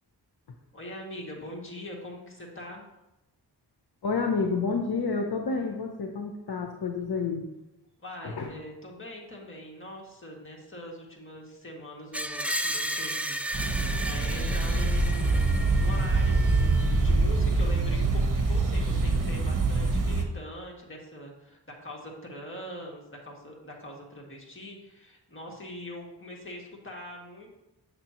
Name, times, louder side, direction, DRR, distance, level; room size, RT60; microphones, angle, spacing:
voice 1, 0.7-2.9 8.0-13.4 13.9-27.5, left 1 dB, 30° left, -2 dB, 2.0 m, -42 dB
voice 2, 4.0-7.5 8.2-8.5, left 4 dB, 60° left, 2 dB, 0.8 m, -29 dB
Screech, 12.1-17.1, right 1 dB, 5° right, 0.3 m, -34 dB
sound 1, 13.5-20.2, right 3 dB, 45° right, 1.1 m, -25 dB
8.3 x 6.7 x 3.0 m, 0.94 s
wide cardioid pair, 75°, 43 cm